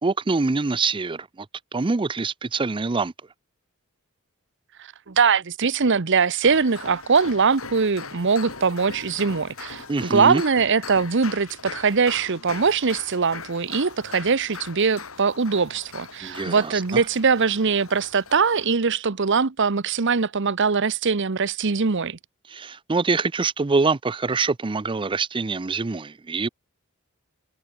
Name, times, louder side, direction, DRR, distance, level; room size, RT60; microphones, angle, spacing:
voice 1, 0.0-1.5 1.7-3.1 9.9-10.4 16.2-17.0 22.5-26.5, right 4 dB, 25° right, 0.5 m, -25 dB
voice 2, 5.1-22.2, right 5 dB, 60° right, 0.9 m, -22 dB
sound 1, 6.4-18.8, left 5 dB, 80° left, 6.1 m, -40 dB
head